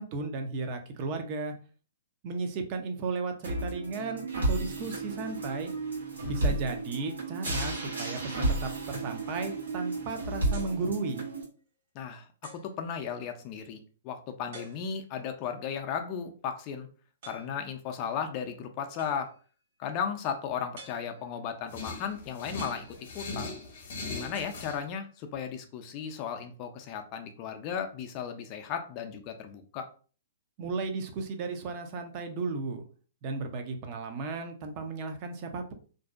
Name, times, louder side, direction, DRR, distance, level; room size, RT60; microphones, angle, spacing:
voice 1, 0.0-1.5 2.2-5.7 6.2-11.3 30.6-32.8 33.2-35.7, right 4 dB, 40° right, 6 dB, 0.5 m, -34 dB
sound 1, 3.4-11.4, right 2 dB, 85° right, 1.1 m, -32 dB
voice 2, 6.2-6.5 12.0-13.8 14.0-16.9 17.2-19.3 19.8-23.5 24.1-29.9, left 7 dB, 40° left, 6 dB, 0.4 m, -35 dB
sound 2, 10.5-10.9 11.6-11.7 12.4-12.8 14.5-15.2 17.2-17.6 19.0-19.5 20.7-21.4 22.6-23.4 24.3-25.2, right 1 dB, 65° right, 1.2 m, -50 dB
sound 3, 21.7-24.8, left 3 dB, 60° left, 0.8 m, -39 dB
2.5 x 2.1 x 2.4 m, 0.39 s
hypercardioid pair, 125°, 0 cm